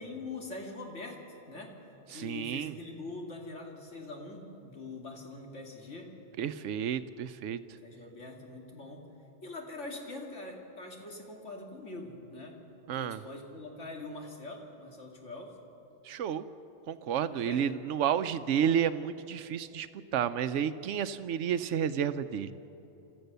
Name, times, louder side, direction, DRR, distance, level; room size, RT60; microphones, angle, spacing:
voice 1, 0.0-1.8 2.1-6.2 7.8-9.0 9.4-12.6 12.9-15.6 17.3-17.7, left 2 dB, 85° left, 0 dB, 2.8 m, -43 dB
voice 2, 2.1-2.7 6.4-7.6 12.9-13.2 16.0-16.4 16.9-22.5, right 8 dB, 90° right, 12 dB, 1.0 m, -31 dB
27.5 x 14.0 x 6.8 m, 3.0 s
omnidirectional pair, 1.2 m